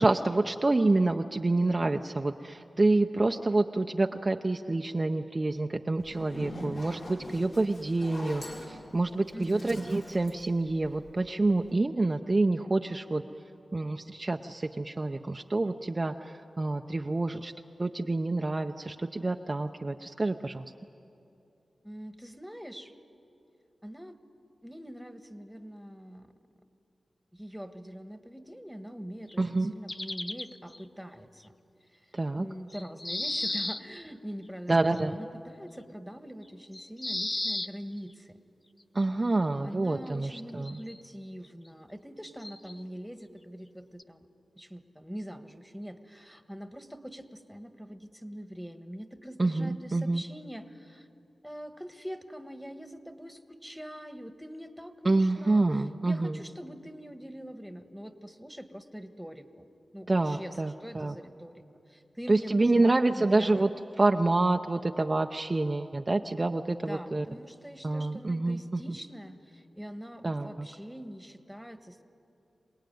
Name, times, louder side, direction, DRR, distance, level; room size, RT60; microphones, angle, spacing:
voice 1, 0.0-13.2 13.7-17.5 17.8-20.7 29.4-29.7 32.1-32.5 34.7-35.2 38.9-40.8 49.4-50.2 55.0-56.4 60.1-61.2 62.3-63.7 64.0-67.3 67.8-69.0 70.2-70.7, right 2 dB, 35° right, 5 dB, 0.7 m, -27 dB
Zipper (clothing), 6.0-11.3, left 1 dB, 70° left, 4.6 m, -42 dB
voice 2, 9.3-9.7 21.8-22.9 23.8-24.2 24.6-26.3 27.3-31.5 31.9-38.4 39.6-44.3 44.5-51.1 51.4-55.6 56.0-59.7 59.9-63.6 66.9-72.0, equal, ahead, 7 dB, 1.5 m, -43 dB
sound 1, 29.3-29.4 29.9-30.8 32.7-33.8 34.7-35.0 36.7-37.7 39.0-39.1 40.6-41.0 41.4-41.5 42.4-42.8 44.0-44.1, left 2 dB, 30° left, 0.6 m, -34 dB
26.0 x 19.0 x 9.4 m, 2.7 s
cardioid pair, 65°, 0 cm